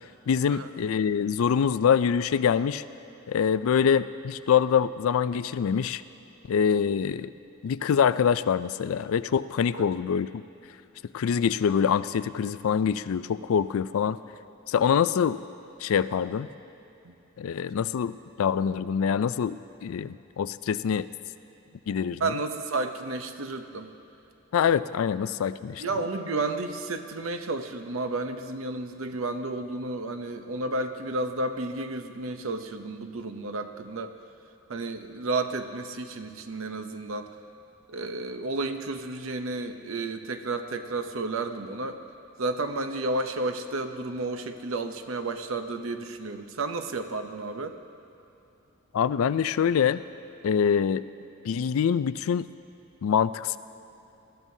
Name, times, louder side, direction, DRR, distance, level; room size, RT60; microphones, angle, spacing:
voice 1, 0.3-2.8 3.3-6.0 6.5-7.3 7.6-10.4 11.1-14.2 14.7-15.4 15.8-16.5 17.4-21.1 21.9-22.2 24.5-25.8 48.9-50.0 50.4-51.0 51.4-52.5 53.0-53.6, left 7 dB, 75° left, 15 dB, 0.3 m, -25 dB
voice 2, 22.2-23.9 25.8-34.1 34.7-37.3 37.9-42.0 42.4-47.8, right 2 dB, 70° right, 8 dB, 0.7 m, -32 dB
20.0 x 14.0 x 2.7 m, 2.9 s
head